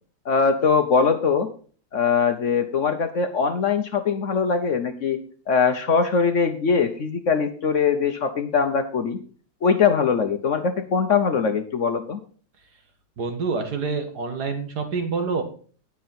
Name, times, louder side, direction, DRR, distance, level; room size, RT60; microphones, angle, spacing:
voice 1, 0.3-1.5 1.9-5.2 5.5-9.2 9.6-12.2, left 5 dB, 55° left, 8 dB, 1.0 m, -21 dB
voice 2, 13.2-15.4, right 4 dB, 70° right, 6 dB, 2.1 m, -27 dB
17.0 x 5.7 x 4.2 m, 0.43 s
omnidirectional pair, 1.8 m